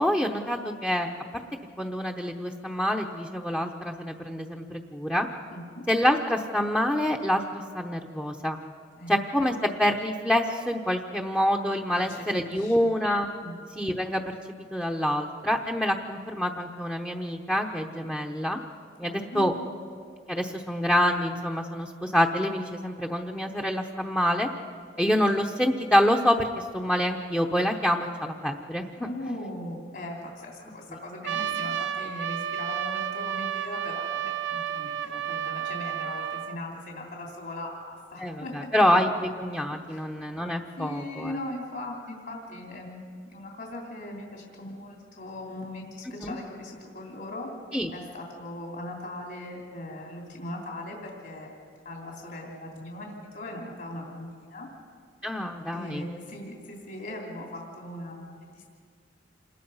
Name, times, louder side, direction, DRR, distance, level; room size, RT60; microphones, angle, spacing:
voice 1, 0.0-1.4 1.8-5.3 5.9-8.6 9.1-13.3 13.8-14.3 14.7-18.6 19.0-19.5 20.3-24.5 25.0-29.1 31.3-31.5 38.2-41.3 46.2-46.3 47.7-47.9 55.2-56.0, equal, 5° left, 2 dB, 0.9 m, -26 dB
voice 2, 5.5-5.8 9.0-9.2 11.9-12.9 13.4-13.6 19.0-19.7 29.0-38.7 39.9-40.1 40.8-47.5 47.9-51.5 51.8-54.7 55.7-58.6, left 1 dB, 60° left, -1 dB, 3.1 m, -39 dB
Trumpet, 31.2-36.6, right 9 dB, 70° right, 0.7 m, -31 dB
27.0 x 20.5 x 5.6 m, 2.2 s
head